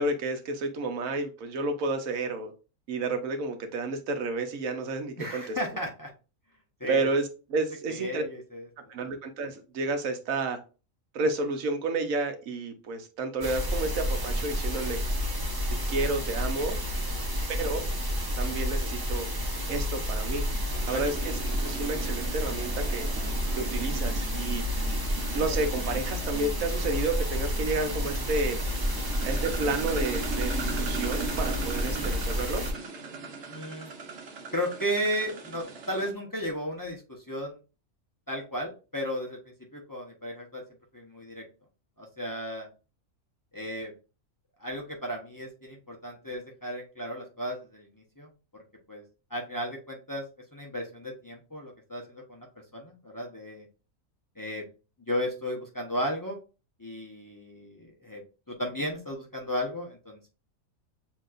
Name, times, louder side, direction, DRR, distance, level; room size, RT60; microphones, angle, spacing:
voice 1, 0.0-2.5 2.9-5.6 6.9-8.2 8.9-10.6 11.1-15.0 15.9-16.8 17.5-17.8 18.4-19.3 19.7-20.4 20.9-21.3 21.6-23.1 23.5-24.7 25.3-28.6 29.2-32.6, right 3 dB, 80° right, 7 dB, 1.2 m, -31 dB
voice 2, 5.2-6.1 6.8-7.1 7.9-8.9 20.9-21.0 33.5-33.9 34.5-37.6 38.3-39.4 39.7-40.6 40.9-41.4 42.0-42.7 43.5-43.9 44.6-48.6 48.9-49.0 49.3-50.2 50.5-52.5 52.7-53.7 54.4-54.6 55.1-56.4 56.8-58.2 58.5-60.3, equal, 20° left, -1 dB, 0.8 m, -34 dB
sound 1, 13.4-32.7, equal, 20° right, 0.6 m, -30 dB
sound 2, 20.7-36.1, right 4 dB, 60° right, 1.2 m, -39 dB
7.2 x 2.9 x 2.4 m, 0.32 s
omnidirectional pair, 1.4 m